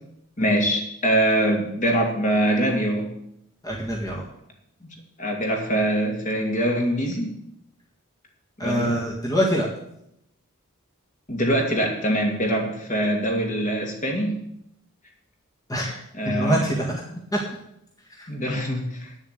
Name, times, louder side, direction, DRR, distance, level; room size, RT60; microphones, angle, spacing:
voice 1, 0.4-3.1 4.8-4.9 5.2-7.4 8.6-8.9 11.3-14.4 16.2-16.7 18.3-19.1, right 1 dB, 35° left, 1 dB, 2.4 m, -23 dB
voice 2, 3.6-4.2 8.6-9.7 15.7-16.9 17.3-17.4 18.1-18.3, equal, 15° left, -2 dB, 1.9 m, -25 dB
9.7 x 7.4 x 8.2 m, 0.76 s
head